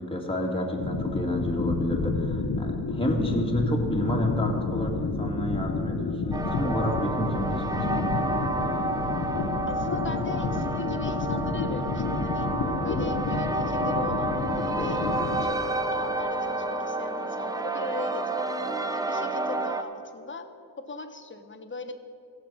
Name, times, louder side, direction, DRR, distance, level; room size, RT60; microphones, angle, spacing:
voice 1, 0.0-8.3, equal, 15° left, -1 dB, 2.1 m, -29 dB
sound 1, 0.8-15.5, left 4 dB, 55° left, 1.0 m, -30 dB
sound 2, 6.3-19.8, right 2 dB, 10° right, 0.8 m, -30 dB
voice 2, 9.7-12.5 12.8-18.4 18.9-20.5 20.8-21.9, left 3 dB, 30° left, 8 dB, 1.0 m, -39 dB
16.0 x 6.9 x 6.2 m, 2.8 s
cardioid pair, 70°, 39 cm